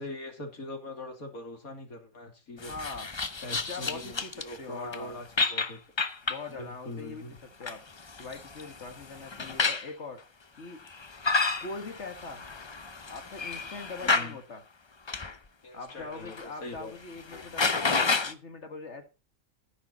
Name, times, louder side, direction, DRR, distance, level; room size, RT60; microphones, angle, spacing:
voice 1, 0.0-2.7 3.4-5.8 6.5-7.4 14.0-14.4 15.6-16.9, left 2 dB, 85° left, 3.2 m, -42 dB
voice 2, 2.6-3.1 3.5-5.2 6.2-7.8 8.2-10.2 10.6-10.8 11.6-12.5 13.1-14.6 15.7-19.1, left 3 dB, 55° left, 1.9 m, -42 dB
sound 1, 2.6-4.6 4.9-5.0 5.4-6.5 7.4-9.9 10.9-14.3 15.1-15.3 15.9-16.5 16.8-16.9 17.2-18.3, left 4 dB, 30° left, 0.5 m, -31 dB
12.0 x 10.5 x 4.1 m
omnidirectional pair, 1.5 m